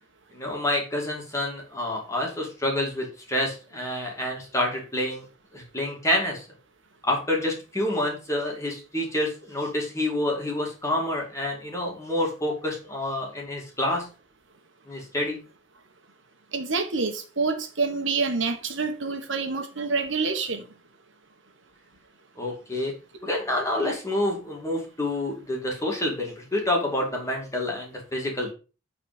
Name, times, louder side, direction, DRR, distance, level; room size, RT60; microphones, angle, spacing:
voice 1, 0.3-5.2 5.5-6.5 7.0-14.1 14.9-15.4 22.4-22.9 23.2-28.5, left 1 dB, 15° left, 2.6 m, -28 dB
voice 2, 16.5-20.7, right 4 dB, 70° right, 1.5 m, -27 dB
9.0 x 4.3 x 5.3 m
head